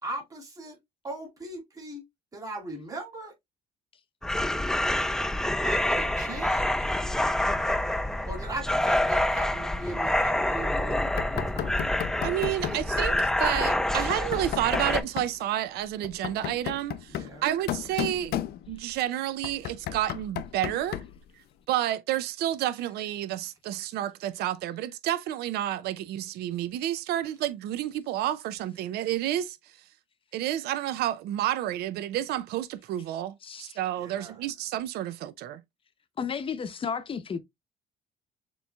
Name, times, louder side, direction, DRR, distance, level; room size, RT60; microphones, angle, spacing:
voice 1, 0.0-0.8 1.0-2.0 2.3-3.3 5.6-6.9 8.3-11.8 12.6-12.8 17.1-17.5 34.0-34.4, right 1 dB, 20° right, 2.6 m, -39 dB
sound 1, 4.2-15.0, left 1 dB, 5° left, 0.4 m, -27 dB
Knock, 11.2-12.9 14.1-15.4 16.0-18.9 19.4-21.2, left 12 dB, 70° left, 0.5 m, -34 dB
voice 2, 12.2-18.4 18.7-21.0 21.7-29.9 30.3-35.6, right 12 dB, 75° right, 0.5 m, -30 dB
voice 3, 33.4-33.8 36.2-37.4, left 6 dB, 30° left, 0.7 m, -33 dB
6.8 x 3.0 x 2.3 m
cardioid pair, 110°, 17 cm